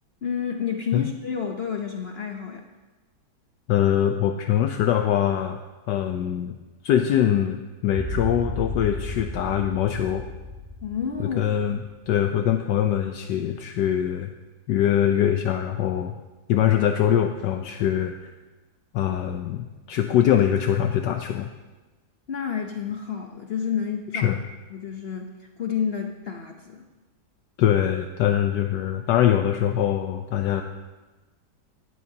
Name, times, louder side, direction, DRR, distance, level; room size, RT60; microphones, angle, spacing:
voice 1, 0.2-2.7 10.8-11.4 22.3-24.3 24.7-26.9, left 7 dB, 50° left, 3 dB, 0.7 m, -30 dB
voice 2, 3.7-5.6 5.9-6.5 6.8-10.2 11.2-11.8 12.1-14.3 14.7-16.1 16.5-18.1 18.9-21.5 24.1-24.4 27.6-30.6, left 10 dB, 75° left, 5 dB, 1.2 m, -23 dB
sound 1, 7.9-12.3, left 1 dB, 15° right, 1.2 m, -34 dB
16.5 x 12.5 x 2.8 m, 1.2 s
omnidirectional pair, 2.0 m